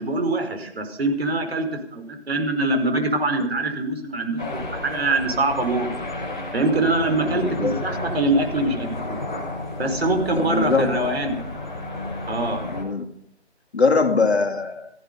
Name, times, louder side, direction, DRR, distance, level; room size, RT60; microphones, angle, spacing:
voice 1, 0.0-5.9 6.5-9.2 9.8-11.4 12.3-12.6, right 2 dB, 60° right, 6 dB, 5.0 m, -24 dB
sound 1, 4.4-12.8, left 2 dB, 5° left, 0.6 m, -32 dB
voice 2, 7.3-7.7 10.4-11.0 12.6-13.1 13.7-14.9, left 4 dB, 70° left, 5 dB, 2.5 m, -22 dB
16.5 x 14.5 x 5.5 m, 0.72 s
figure-of-eight pair, 160°, 34 cm